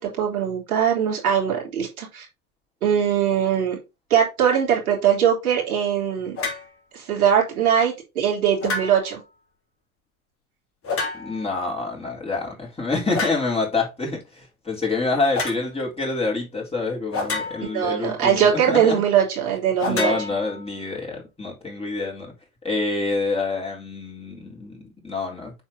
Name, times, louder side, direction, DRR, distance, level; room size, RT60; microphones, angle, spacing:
voice 1, 0.0-2.3 2.8-3.8 4.1-6.4 6.9-9.2 17.7-20.1, right 8 dB, 85° right, 3.6 m, -21 dB
sound 1, 6.4-6.7 8.6-9.2 10.8-11.5 13.1-13.5 15.3-15.6 17.1-17.9 19.8-20.9, left 3 dB, 30° left, 3.0 m, -29 dB
voice 2, 11.1-19.0 19.8-22.3 22.6-25.5, left 3 dB, 15° left, 4.1 m, -27 dB
7.3 x 4.5 x 4.1 m
hypercardioid pair, 85°, 43 cm